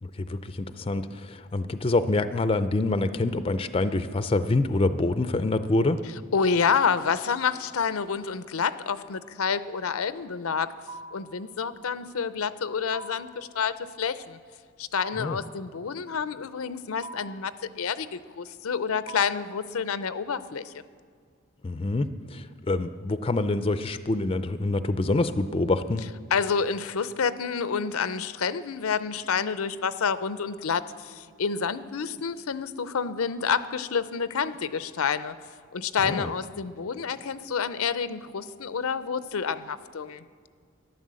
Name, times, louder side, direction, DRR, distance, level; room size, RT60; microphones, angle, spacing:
voice 1, 0.0-6.0 15.2-15.4 21.6-26.1 36.0-36.3, left 2 dB, 25° left, 11 dB, 0.4 m, -26 dB
voice 2, 6.3-10.7 11.1-14.4 14.8-20.8 26.3-35.3 35.7-40.2, left 6 dB, 85° left, 14 dB, 0.6 m, -28 dB
sound 1, 10.9-11.4 12.9-13.4 15.0-15.5 17.0-17.5 19.1-19.6, right 2 dB, 10° right, 0.7 m, -42 dB
13.0 x 11.0 x 7.6 m, 2.1 s
head